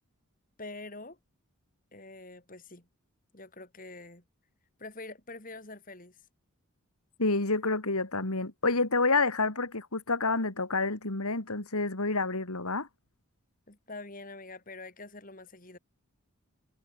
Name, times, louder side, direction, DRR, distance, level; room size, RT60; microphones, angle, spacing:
voice 1, 0.6-1.2 1.9-2.9 3.3-4.2 4.8-6.2 13.7-15.8, left 2 dB, 40° left, 3.8 m, -45 dB
voice 2, 7.2-12.9, left 3 dB, 80° left, 3.1 m, -28 dB
head